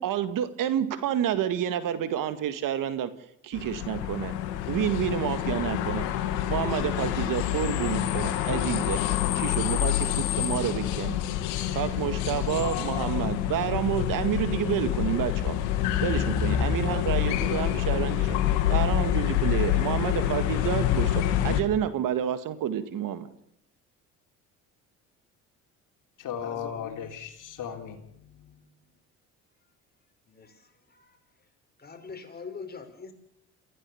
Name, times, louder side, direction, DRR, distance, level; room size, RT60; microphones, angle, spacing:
voice 1, 0.0-3.1 3.4-4.3 4.7-6.1 6.5-11.2 11.7-15.6 16.0-18.4 18.7-23.3, right 10 dB, 65° right, 2.0 m, -29 dB
sound 1, 3.5-21.6, left 12 dB, 85° left, 2.1 m, -27 dB
voice 2, 26.2-28.6, left 8 dB, 60° left, 3.6 m, -37 dB
voice 3, 30.3-31.2 31.8-33.1, left 5 dB, 25° left, 5.3 m, -43 dB
27.5 x 15.5 x 7.2 m
supercardioid pair, 75°, 36 cm